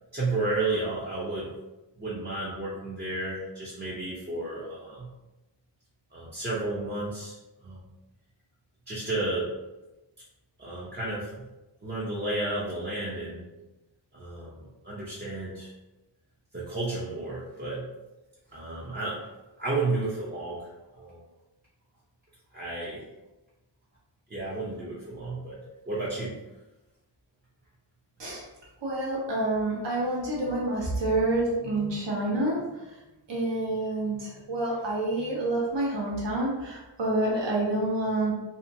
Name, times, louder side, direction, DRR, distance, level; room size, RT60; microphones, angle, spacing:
voice 1, 0.1-1.5 2.0-5.1 6.1-7.4 7.6-7.9 8.9-9.5 10.6-11.3 11.8-13.5 14.1-15.7 16.5-17.9 18.5-19.2 19.6-20.7 20.9-21.2 22.5-23.0 24.3-26.3, right 2 dB, 25° right, -7 dB, 0.6 m, -32 dB
voice 2, 28.8-33.0 33.3-38.3, right 2 dB, 70° right, -5 dB, 1.0 m, -28 dB
2.7 x 2.6 x 2.6 m, 1.0 s
wide cardioid pair, 65°, 44 cm